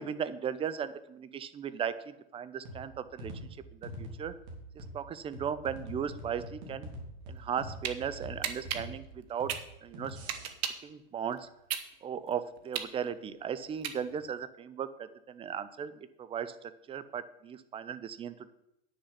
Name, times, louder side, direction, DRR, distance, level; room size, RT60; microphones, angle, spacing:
voice 1, 0.0-3.3 4.0-4.3 4.8-6.9 7.3-9.5 9.8-10.2 10.8-11.4 12.0-14.9 15.3-15.9 16.2-16.5 16.9-18.5, right 8 dB, 20° right, 14 dB, 0.5 m, -36 dB
sound 1, 2.6-10.5, equal, 55° right, 3.3 m, -45 dB
sound 2, 7.4-8.0 8.4-10.9 11.3-14.4, right 9 dB, 80° right, 1.2 m, -36 dB
9.5 x 6.6 x 5.8 m, 0.82 s
supercardioid pair, 125°, 31 cm